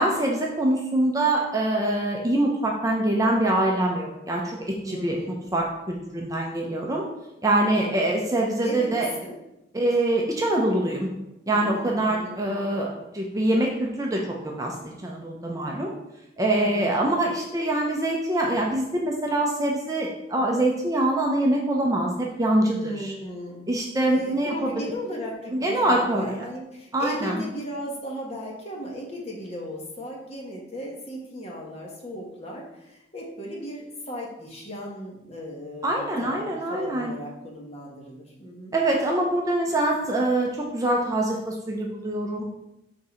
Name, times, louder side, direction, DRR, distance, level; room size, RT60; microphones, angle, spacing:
voice 1, 0.0-7.0 7.4-9.1 9.7-11.1 11.5-15.9 16.4-23.1 23.7-24.9 25.5-26.3 26.9-27.4 35.8-37.1 38.7-42.4, right 1 dB, 20° right, -1 dB, 0.6 m, -24 dB
voice 2, 4.8-5.5 7.6-8.0 8.6-9.4 11.5-12.4 16.5-17.0 22.8-23.6 24.0-38.7, equal, 30° left, -2 dB, 1.2 m, -36 dB
4.6 x 3.7 x 5.6 m, 0.90 s
head